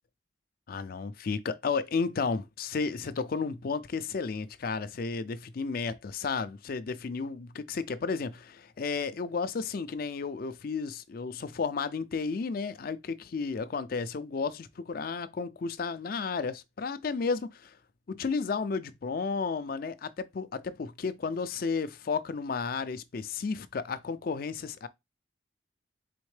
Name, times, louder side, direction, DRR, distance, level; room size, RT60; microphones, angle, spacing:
voice 1, 0.7-17.8 18.1-24.9, left 5 dB, 50° left, 0.4 m, -33 dB
4.3 x 3.5 x 3.2 m
head